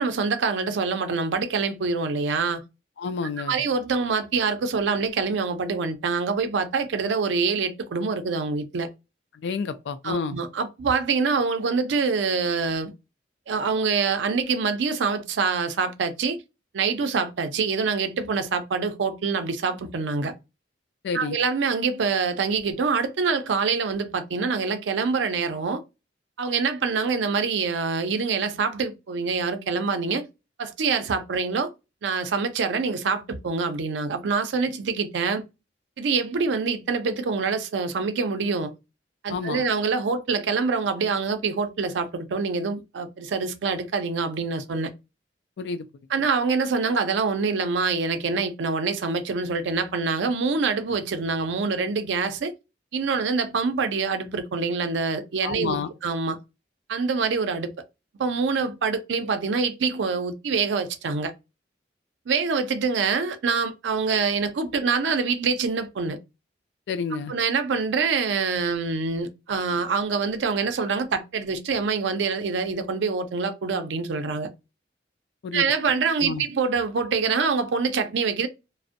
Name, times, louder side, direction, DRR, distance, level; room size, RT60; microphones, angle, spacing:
voice 1, 0.0-2.6 3.5-8.9 10.0-12.9 13.5-16.4 16.7-20.3 21.1-25.8 26.4-30.3 30.6-31.7 32.0-35.4 36.0-38.7 39.2-44.9 46.1-52.5 52.9-56.4 56.9-57.7 58.2-61.3 62.3-66.2 67.3-74.5 75.5-78.5, right 5 dB, 85° right, 0.4 m, -25 dB
voice 2, 3.0-3.6 9.3-10.4 21.0-21.4 39.3-39.7 45.6-45.9 55.4-55.9 66.9-67.3 75.4-75.7 76.2-76.4, left 5 dB, 70° left, 0.3 m, -29 dB
2.5 x 2.0 x 2.5 m
head